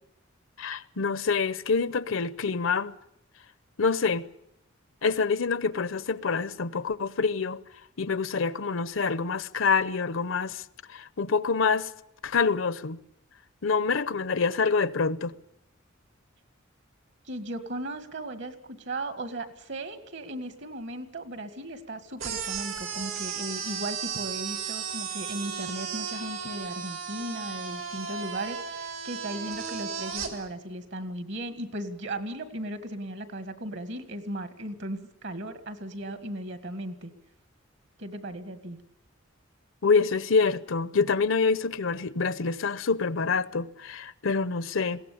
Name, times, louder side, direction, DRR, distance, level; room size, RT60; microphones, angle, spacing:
voice 1, 0.6-2.9 3.8-4.3 5.0-7.6 8.0-10.6 10.9-11.9 12.2-13.0 13.6-15.3 39.8-45.0, left 5 dB, 75° left, 0.8 m, -26 dB
voice 2, 17.3-37.1 38.0-38.8, right 1 dB, 60° right, 2.0 m, -36 dB
sound 1, 22.2-30.3, right 6 dB, 80° right, 3.4 m, -35 dB
21.5 x 17.0 x 8.6 m
head